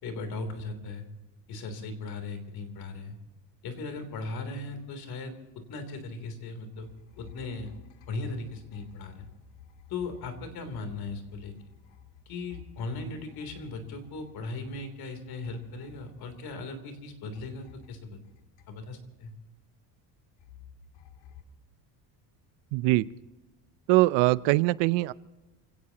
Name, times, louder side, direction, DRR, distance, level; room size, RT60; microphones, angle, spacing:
voice 1, 0.0-1.0 1.5-3.2 3.6-6.9 7.2-7.7 8.1-9.2 9.9-11.5 12.2-18.2 18.7-19.3, left 3 dB, 55° left, 7 dB, 3.3 m, -38 dB
sound 1, 6.7-17.0 17.3-19.2 20.4-21.4, left 7 dB, 80° left, 2.1 m, -53 dB
voice 2, 22.7-23.1 23.9-25.1, right 19 dB, 85° right, 18 dB, 0.7 m, -22 dB
28.5 x 17.5 x 2.9 m, 1.1 s
cardioid pair, 155°, 43 cm